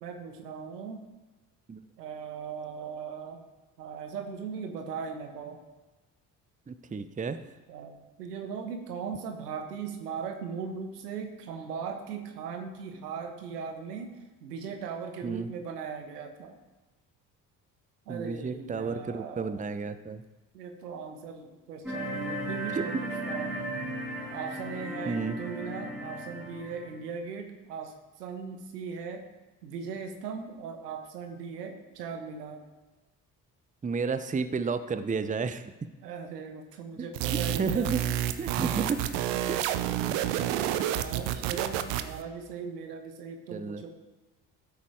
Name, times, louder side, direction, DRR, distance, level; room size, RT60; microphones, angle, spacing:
voice 1, 0.0-1.0 2.0-3.4 3.8-5.6 7.7-14.1 14.4-16.5 18.0-19.6 20.5-23.6 24.3-29.2 29.6-32.6 36.0-37.9 39.3-39.4 40.7-43.9, right 6 dB, 75° right, 5 dB, 1.5 m, -39 dB
voice 2, 6.7-7.4 15.2-15.5 18.1-20.2 22.7-22.8 25.1-25.4 33.8-35.7 37.0-37.1 37.6-38.0 38.4-39.1 39.5-39.6 41.5-41.6 43.5-43.8, right 5 dB, 15° right, 11 dB, 0.8 m, -31 dB
sound 1, 21.8-26.9, right 1 dB, ahead, 4.1 m, -36 dB
sound 2, 37.1-42.2, right 11 dB, 60° right, 0.9 m, -30 dB
14.0 x 8.4 x 4.8 m, 1.2 s
figure-of-eight pair, 45°, 47 cm